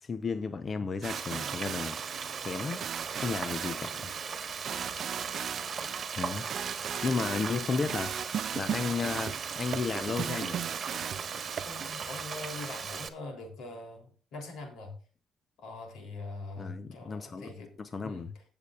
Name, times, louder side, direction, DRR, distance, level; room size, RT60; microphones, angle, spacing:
voice 1, 0.0-2.0 2.4-2.8 3.1-4.1 6.2-10.6 16.6-17.5 17.8-18.3, left 4 dB, 40° left, 0.7 m, -34 dB
sound 1, 1.0-11.9, right 8 dB, 60° right, 0.4 m, -38 dB
Frying (food), 1.1-13.1, right 6 dB, 45° right, 1.5 m, -38 dB
voice 2, 4.7-5.1 11.6-14.9 15.6-17.7 18.0-18.4, left 3 dB, 80° left, 3.3 m, -43 dB
20.0 x 6.9 x 2.4 m
cardioid pair, 90°, 0 cm